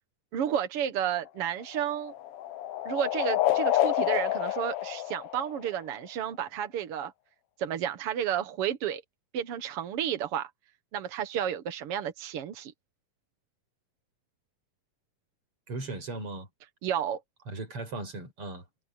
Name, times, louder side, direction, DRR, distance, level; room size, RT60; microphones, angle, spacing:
voice 1, 0.3-2.1 2.8-7.1 7.6-9.0 9.3-10.5 10.9-12.7 16.8-17.2, right 9 dB, 60° right, 1.7 m, -31 dB
sound 1, 1.3-6.0, left 13 dB, 85° left, 1.3 m, -29 dB
voice 2, 15.7-16.5 17.5-18.7, right 2 dB, 40° right, 5.7 m, -37 dB
omnidirectional pair, 3.7 m